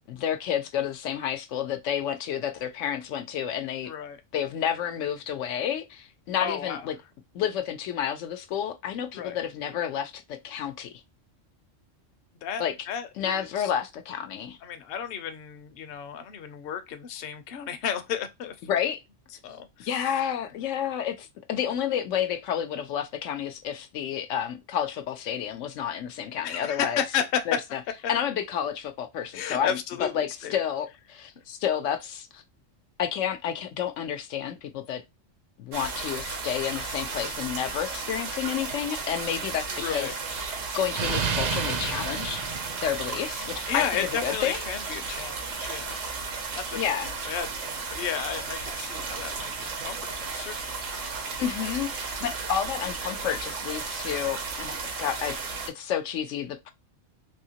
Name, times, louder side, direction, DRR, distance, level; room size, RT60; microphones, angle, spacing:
voice 1, 0.1-3.9 4.3-7.0 7.3-10.9 12.6-12.7 13.2-14.6 18.6-19.0 19.9-27.0 27.5-27.8 28.1-32.4 33.0-35.0 35.6-42.4 42.8-44.6 46.8-47.1 51.4-55.4 55.7-56.7, left 9 dB, 85° left, 1.0 m, -30 dB
voice 2, 3.9-4.2 6.4-6.9 9.1-9.4 12.4-13.7 14.6-18.5 19.4-19.9 26.4-27.6 29.3-30.5 39.7-40.1 43.7-46.1 46.5-46.8 47.2-50.0 50.2-50.9, left 8 dB, 60° left, 0.8 m, -33 dB
sound 1, 35.7-55.7, right 4 dB, 85° right, 1.2 m, -34 dB
Explosion, 39.7-43.6, right 5 dB, 50° right, 0.5 m, -32 dB
3.5 x 2.8 x 2.8 m
omnidirectional pair, 1.3 m